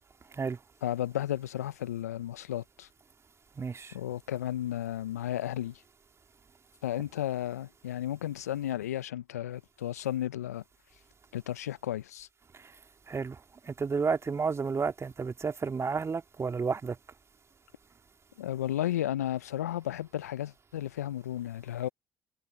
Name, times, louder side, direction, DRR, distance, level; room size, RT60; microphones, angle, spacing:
voice 1, 0.8-2.9 3.9-5.8 6.8-10.6 11.3-12.3 18.4-21.9, left 12 dB, 85° left, 0.7 m, -33 dB
voice 2, 3.6-3.9 12.5-12.7 13.1-17.0, right 5 dB, 35° right, 3.4 m, -31 dB
figure-of-eight pair, 50°, 8 cm